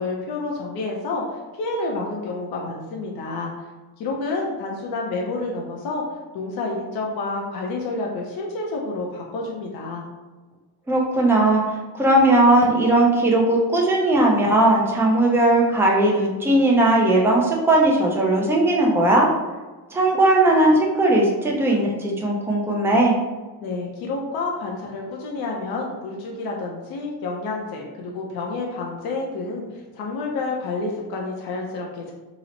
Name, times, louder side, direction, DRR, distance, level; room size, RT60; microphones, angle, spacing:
voice 1, 0.0-3.5 4.0-6.0 6.3-10.0 23.6-32.1, left 3 dB, 60° left, -1 dB, 0.6 m, -29 dB
voice 2, 10.9-11.6 12.0-19.3 19.9-23.2, right 1 dB, 5° right, -2 dB, 0.4 m, -18 dB
3.0 x 2.0 x 3.8 m, 1.2 s
cardioid pair, 140°, 42 cm